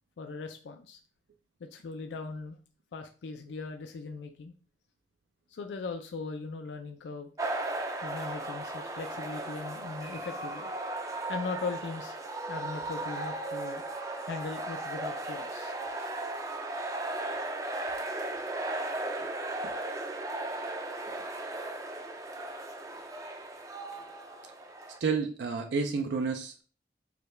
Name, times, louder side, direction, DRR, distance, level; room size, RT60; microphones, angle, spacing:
voice 1, 0.2-1.0 1.6-2.6 2.9-4.5 5.5-7.3 8.0-10.7 11.3-12.2 12.5-13.8 14.2-15.8, left 4 dB, 85° left, 6 dB, 0.4 m, -39 dB
sound 1, 7.4-25.0, right 2 dB, 20° right, 0.4 m, -36 dB
voice 2, 25.0-26.6, right 5 dB, 80° right, 4 dB, 0.4 m, -30 dB
4.7 x 2.2 x 3.2 m, 0.38 s
head